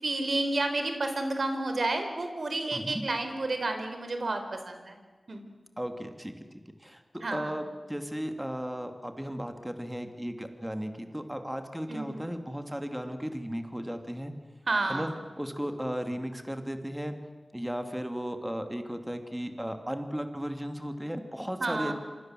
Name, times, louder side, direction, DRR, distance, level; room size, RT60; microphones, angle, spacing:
voice 1, 0.0-5.0 5.3-5.4 7.2-7.5 11.9-12.2 14.7-15.1 21.6-21.9, right 2 dB, 70° right, 6 dB, 4.4 m, -30 dB
voice 2, 2.7-3.0 5.8-6.3 6.8-14.3 14.9-15.1 15.4-17.2 17.5-21.9, equal, 10° right, 6 dB, 2.7 m, -35 dB
27.0 x 25.0 x 7.7 m, 1.3 s
cardioid pair, 45°, 0 cm